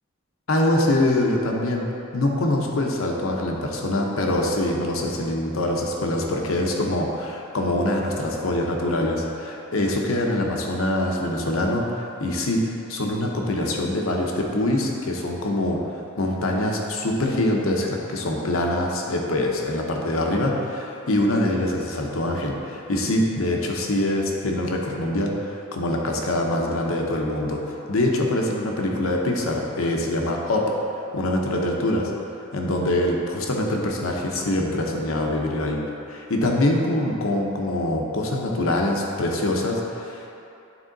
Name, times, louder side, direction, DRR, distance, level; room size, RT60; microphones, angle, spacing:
voice 1, 0.5-1.9 2.1-12.6 12.9-30.7 31.1-32.1 32.5-35.8 36.1-40.3, left 1 dB, 85° left, 0 dB, 0.8 m, -24 dB
8.9 x 3.7 x 3.9 m, 2.8 s
head